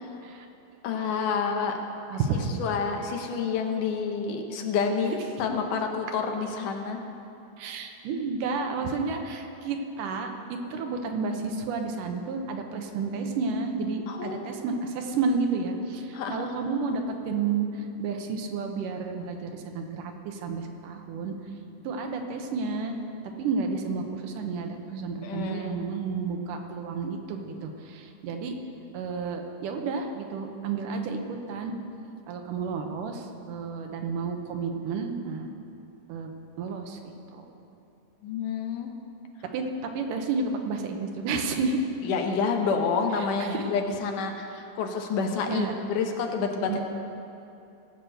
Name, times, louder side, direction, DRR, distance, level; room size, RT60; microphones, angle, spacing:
voice 1, 0.8-1.8 2.6-5.1 5.4-7.0 14.1-14.5 16.1-16.5 25.2-25.8 38.2-38.9 42.0-46.8, left 5 dB, 75° left, 3 dB, 2.4 m, -28 dB
voice 2, 2.1-2.6 7.6-21.3 21.8-23.0 23.4-28.6 28.9-31.7 32.3-35.5 36.1-36.3 36.6-37.7 39.5-41.8 43.5-43.6 45.5-45.8 46.7-46.8, right 4 dB, 75° right, 4 dB, 2.5 m, -31 dB
17.0 x 6.1 x 7.8 m, 2.8 s
omnidirectional pair, 3.8 m